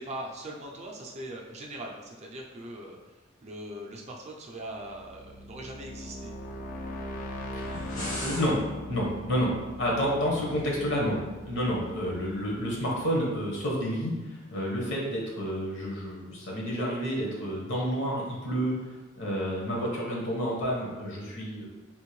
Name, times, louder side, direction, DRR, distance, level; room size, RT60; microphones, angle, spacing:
voice 1, 0.0-6.3, right 1 dB, 30° right, -1 dB, 0.5 m, -41 dB
sound 1, 4.7-13.5, equal, 40° left, 0.4 m, -41 dB
voice 2, 7.5-8.6 8.9-18.7 19.1-21.7, equal, 60° left, -3 dB, 1.0 m, -30 dB
sound 2, 7.6-8.5, left 1 dB, 90° left, 1.3 m, -35 dB
3.5 x 2.6 x 3.0 m, 1.2 s
head